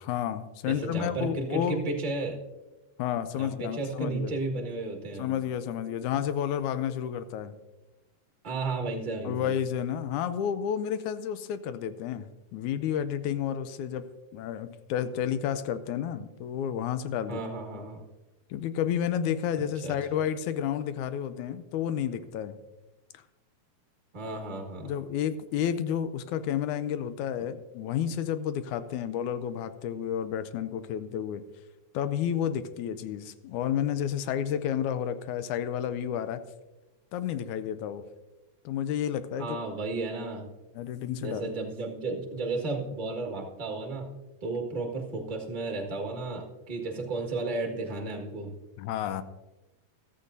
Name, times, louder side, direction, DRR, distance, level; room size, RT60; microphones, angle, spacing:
voice 1, 0.0-1.8 3.0-4.3 5.2-7.5 9.2-14.1 14.3-17.4 18.5-22.6 23.1-23.2 24.8-31.4 31.9-36.4 37.1-38.0 38.7-39.6 40.8-41.6 48.8-49.2, left 9 dB, 90° left, 12 dB, 2.1 m, -31 dB
voice 2, 0.6-2.4 3.3-5.3 8.4-9.5 17.3-18.0 19.8-20.0 24.1-24.9 39.4-40.5 41.2-44.1 44.4-48.5, right 3 dB, 25° right, 2 dB, 1.1 m, -33 dB
14.0 x 13.5 x 2.7 m, 1.1 s
omnidirectional pair, 3.5 m